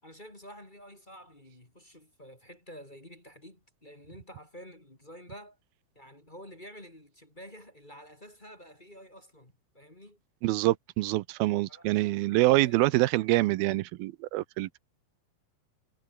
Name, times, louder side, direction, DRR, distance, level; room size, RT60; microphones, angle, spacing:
voice 1, 0.0-5.6 5.9-10.2 11.7-13.5, equal, 15° left, 2.9 m, -50 dB
voice 2, 10.4-14.8, right 18 dB, 90° right, 2.6 m, -26 dB
omnidirectional pair, 4.2 m